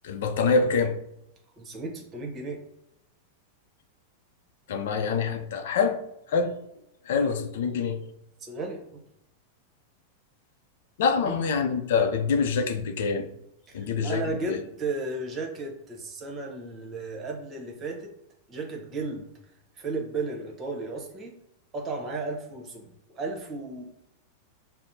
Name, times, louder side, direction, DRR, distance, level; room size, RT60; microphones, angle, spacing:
voice 1, 0.0-1.0 4.7-6.0 6.3-6.6 7.1-8.0 11.0-13.3 13.7-14.2 14.5-14.6, left 5 dB, 70° left, 7 dB, 0.5 m, -25 dB
voice 2, 1.6-2.6 8.4-9.0 11.2-11.4 13.7-18.1 18.5-19.3 19.8-21.3 21.7-23.8, right 3 dB, 30° right, 2 dB, 1.0 m, -34 dB
5.7 x 2.1 x 2.7 m, 0.81 s
hypercardioid pair, 120°, 0 cm